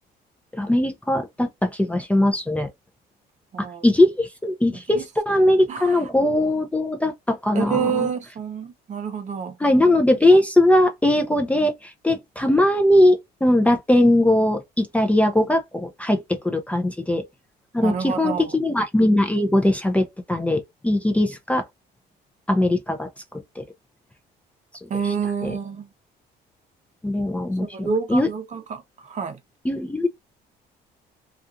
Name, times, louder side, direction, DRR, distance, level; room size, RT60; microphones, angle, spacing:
voice 1, 0.6-2.7 3.6-8.1 9.6-17.2 17.7-21.6 22.5-23.1 23.6-23.7 25.4-25.5 27.0-28.3 29.7-30.1, left 1 dB, 10° left, 0.5 m, -20 dB
voice 2, 3.5-3.9 4.9-5.0 5.7-6.1 7.5-9.6 17.8-18.6 24.9-25.9 27.6-29.4, right 6 dB, 45° right, 0.8 m, -28 dB
2.4 x 2.4 x 2.6 m
cardioid pair, 110°, 17 cm